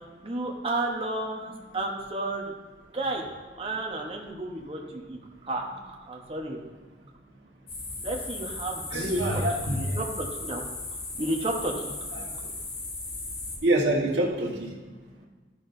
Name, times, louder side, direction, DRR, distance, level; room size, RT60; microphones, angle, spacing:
voice 1, 0.2-2.5 2.9-3.2 3.6-5.2 5.4-6.6 8.0-10.6 11.2-11.9, right 2 dB, 30° right, 0 dB, 0.9 m, -32 dB
sound 1, 7.7-13.6, left 2 dB, 60° left, 1.4 m, -37 dB
voice 2, 8.9-10.0 13.6-14.7, right 1 dB, 90° right, -2 dB, 1.4 m, -25 dB
12.5 x 6.0 x 2.6 m, 1.3 s
head